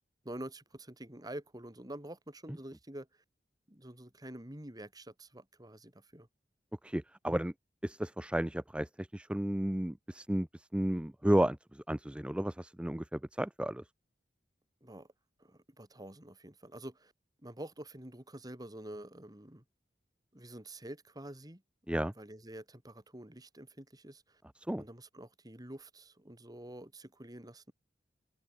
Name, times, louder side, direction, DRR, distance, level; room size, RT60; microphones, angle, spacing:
voice 1, 0.2-3.1 3.7-6.3 14.8-15.1 15.4-17.1 17.4-19.6 20.3-21.6 22.2-24.4 24.8-27.7, right 1 dB, 20° right, 3.3 m, -47 dB
voice 2, 6.8-7.5 7.8-13.8 21.9-22.1 24.7-24.8, right 1 dB, 5° right, 0.5 m, -33 dB
head